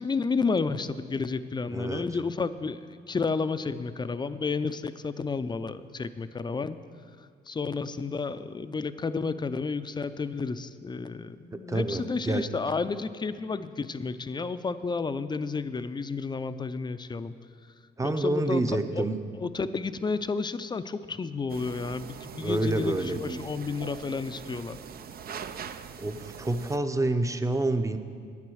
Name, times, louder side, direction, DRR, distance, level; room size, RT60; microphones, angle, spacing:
voice 1, 0.0-2.8 3.1-6.8 7.5-17.3 18.0-18.6 18.9-19.0 19.4-24.8, left 4 dB, 20° left, 12 dB, 0.5 m, -31 dB
voice 2, 1.7-2.0 11.5-12.5 18.0-19.2 22.4-23.4 26.0-28.0, right 2 dB, 15° right, 8 dB, 0.7 m, -28 dB
sound 1, 21.5-26.8, right 7 dB, 50° right, 0.5 m, -42 dB
10.5 x 8.9 x 6.3 m, 2.1 s
cardioid pair, 90°, 20 cm